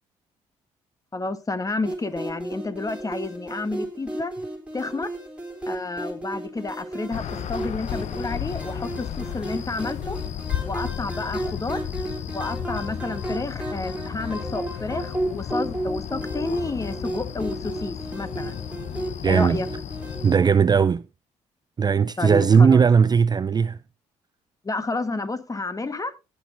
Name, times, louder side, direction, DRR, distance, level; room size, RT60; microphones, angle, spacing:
voice 1, 1.1-4.3 4.7-5.1 5.7-10.2 10.6-11.8 12.3-18.6 19.3-19.7 22.2-22.8 24.6-26.1, left 3 dB, 25° left, 1.3 m, -30 dB
sound 1, 1.8-20.3, right 1 dB, 10° right, 3.4 m, -34 dB
sound 2, 7.1-20.4, left 9 dB, 55° left, 0.7 m, -34 dB
voice 2, 19.2-19.6 20.2-21.0 21.8-23.8, right 6 dB, 30° right, 0.4 m, -18 dB
17.0 x 6.6 x 2.7 m
hypercardioid pair, 55°, 14 cm